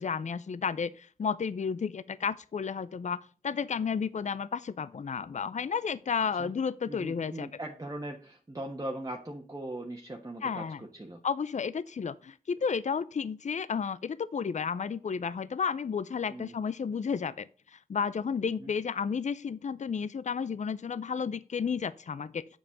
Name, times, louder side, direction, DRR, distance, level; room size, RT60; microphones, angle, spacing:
voice 1, 0.0-7.5 10.4-10.8 11.2-22.5, left 6 dB, 55° left, 0.5 m, -32 dB
voice 2, 6.9-11.2 16.3-16.5 18.6-18.7, right 1 dB, 25° right, 1.3 m, -40 dB
7.2 x 5.4 x 6.3 m
cardioid pair, 55°, 14 cm